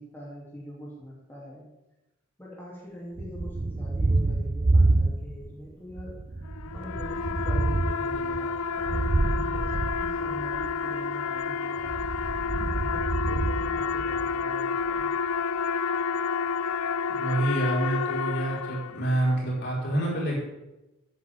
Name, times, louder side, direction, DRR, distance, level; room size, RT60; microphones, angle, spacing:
voice 1, 0.0-1.7 2.4-8.5 8.8-11.9 12.5-15.1, equal, 10° left, -7 dB, 3.0 m, -43 dB
Thunder, 3.2-5.6 5.9-10.7 11.8-14.4, right 2 dB, 30° right, 0.5 m, -27 dB
sound 1, 6.5-19.2, left 5 dB, 90° left, 0.4 m, -30 dB
voice 2, 17.2-20.4, right 1 dB, 50° left, -4 dB, 4.8 m, -27 dB
15.0 x 9.5 x 3.7 m, 1.0 s
head